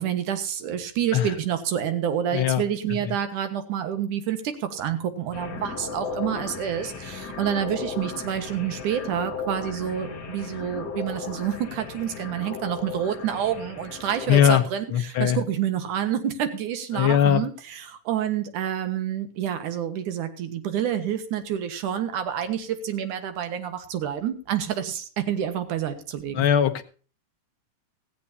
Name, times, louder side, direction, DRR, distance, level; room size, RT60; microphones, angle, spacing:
voice 1, 0.0-26.5, right 9 dB, 80° right, 2.9 m, -28 dB
voice 2, 2.3-2.6 3.1-3.2 14.3-14.6 14.9-15.4 16.9-17.4 26.3-26.8, left 10 dB, 60° left, 1.5 m, -20 dB
sound 1, 5.3-14.5, left 5 dB, 35° left, 2.1 m, -36 dB
16.0 x 15.5 x 2.8 m
omnidirectional pair, 3.6 m